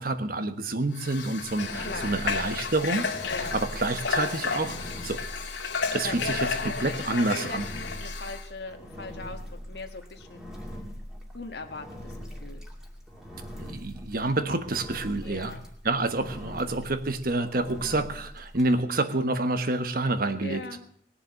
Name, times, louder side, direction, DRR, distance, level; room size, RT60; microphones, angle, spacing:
voice 1, 0.0-3.1 3.5-5.2 5.9-6.5 6.8-7.7 13.6-15.5 15.8-20.6, right 2 dB, 50° right, 9 dB, 1.2 m, -28 dB
Water / Water tap faucet, 0.9-8.5, left 5 dB, 85° left, 2.4 m, -32 dB
Engine, 1.4-18.7, equal, 5° right, 2.4 m, -42 dB
voice 2, 1.8-2.1 3.2-3.6 5.9-6.4 6.6-10.4 11.3-12.6 15.2-15.6 16.4-16.6 20.4-20.8, left 3 dB, 60° left, 5 dB, 1.4 m, -39 dB
20.0 x 7.1 x 8.6 m, 0.64 s
head